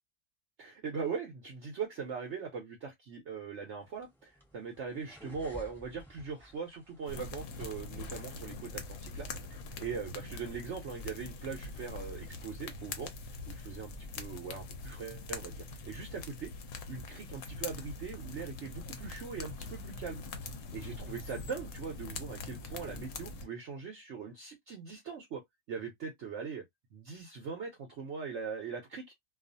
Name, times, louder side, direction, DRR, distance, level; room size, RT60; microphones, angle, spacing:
voice 1, 0.6-16.5 16.9-20.2 20.7-25.4 25.7-26.6 26.9-29.1, right 5 dB, 60° right, 0.8 m, -41 dB
sound 1, 3.8-9.0, equal, ahead, 0.9 m, -55 dB
sound 2, 7.1-23.5, left 3 dB, 65° left, 0.9 m, -43 dB
2.4 x 2.4 x 2.5 m
omnidirectional pair, 1.7 m